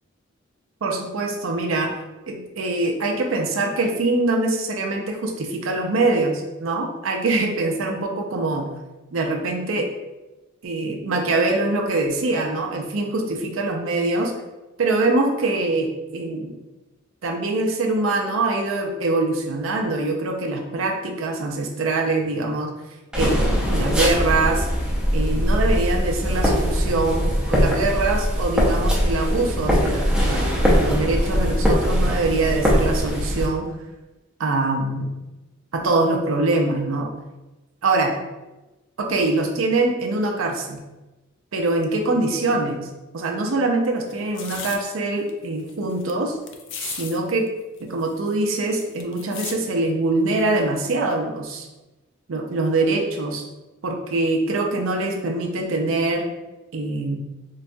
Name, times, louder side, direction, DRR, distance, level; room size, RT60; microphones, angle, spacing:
voice 1, 0.8-1.9 2.3-8.7 9.1-9.9 10.6-14.3 14.8-16.6 17.2-22.7 23.1-23.4 23.7-24.7 25.1-30.5 30.8-33.7 34.4-35.2 35.7-37.1 37.8-38.1 39.0-40.8 41.5-42.9 43.1-46.4 46.8-47.5 47.8-51.7 52.3-53.4 53.8-56.3 56.7-57.2, right 2 dB, 75° right, 2 dB, 0.5 m, -23 dB
sound 1, 23.1-33.5, equal, 5° right, 0.6 m, -21 dB
sound 2, 44.1-44.8 45.3-45.4 45.6-46.1 46.5-47.2 47.5-47.6 47.8-49.6 50.4-50.6, left 6 dB, 60° left, 0.3 m, -35 dB
3.9 x 2.2 x 2.6 m, 1.1 s
head